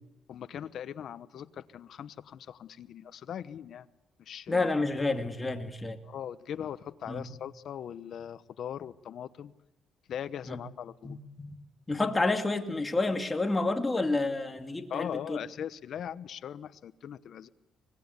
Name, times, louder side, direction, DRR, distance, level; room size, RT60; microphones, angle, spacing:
voice 1, 0.3-3.9 4.2-4.7 6.0-9.5 10.1-11.2 14.9-17.5, left 9 dB, 65° left, 14 dB, 1.0 m, -40 dB
voice 2, 4.5-6.0 7.1-7.2 10.5-10.6 11.0-11.6 11.9-15.4, left 2 dB, 20° left, 5 dB, 2.5 m, -29 dB
24.5 x 20.5 x 8.2 m, 0.99 s
cardioid pair, 90°, 0 cm